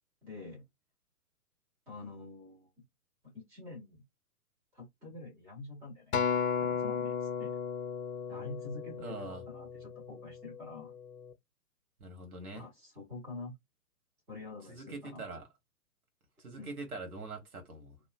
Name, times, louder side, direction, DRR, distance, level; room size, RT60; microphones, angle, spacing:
voice 1, 0.2-0.6 1.9-2.7 3.2-4.0 4.7-6.1 6.6-7.5 8.3-10.9 12.5-13.5 14.3-15.3 16.5-16.7, left 3 dB, 5° right, 0.5 m, -46 dB
Acoustic guitar, 6.1-10.5 11.2-11.3, left 7 dB, 60° left, 0.7 m, -34 dB
voice 2, 9.0-9.5 12.0-12.6 14.7-15.5 16.4-18.0, right 3 dB, 70° right, 1.5 m, -43 dB
2.9 x 2.3 x 2.3 m
figure-of-eight pair, 125°, 46 cm